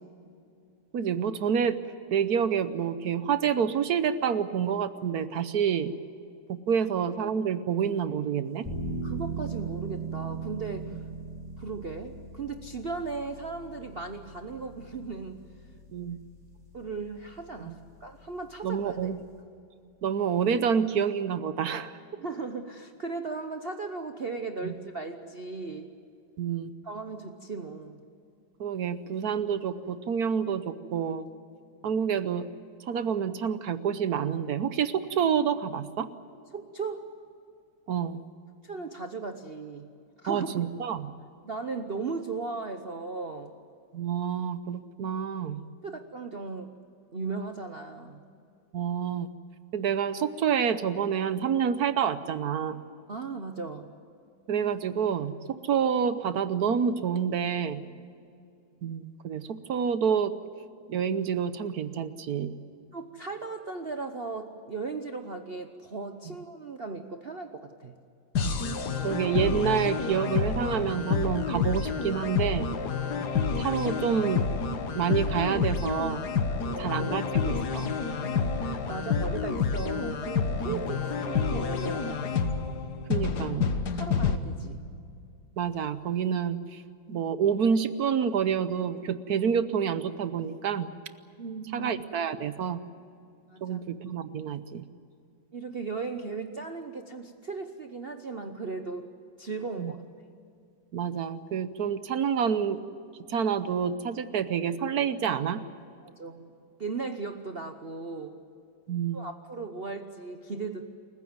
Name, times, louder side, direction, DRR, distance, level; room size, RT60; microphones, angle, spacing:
voice 1, 0.9-1.8 2.1-5.9 6.5-8.7 15.9-16.2 17.6-17.7 18.6-19.2 20.0-21.9 24.6-24.7 26.4-26.7 28.6-31.3 31.8-32.5 32.9-36.1 37.9-38.2 40.3-41.1 43.9-45.6 48.7-49.3 49.7-52.8 54.5-57.8 58.8-60.3 60.9-62.6 68.4-68.6 69.0-72.7 73.6-74.4 74.9-76.2 76.8-77.9 80.7-80.8 83.1-83.6 85.6-86.8 87.1-90.9 91.7-92.8 93.6-94.8 99.8-99.9 100.9-102.8 103.3-105.6 108.9-109.2, right 7 dB, 60° right, 12 dB, 1.2 m, -28 dB
sound 1, 8.6-19.4, right 4 dB, 10° right, 7.8 m, -40 dB
voice 2, 9.0-11.0 11.6-15.4 16.7-19.1 22.2-26.0 26.8-28.0 36.5-37.1 38.6-39.9 40.2-40.6 41.4-43.5 45.8-46.7 47.1-48.2 53.1-53.9 62.9-67.9 76.6-77.2 78.1-82.2 83.9-84.8 91.4-91.9 93.5-93.8 95.5-99.1 99.4-100.0 106.0-106.5 106.8-108.4 109.1-110.8, right 4 dB, 45° right, 6 dB, 0.8 m, -37 dB
sound 2, 68.4-84.4, left 5 dB, 60° left, 1.8 m, -29 dB
28.0 x 15.5 x 9.5 m, 2.5 s
omnidirectional pair, 2.1 m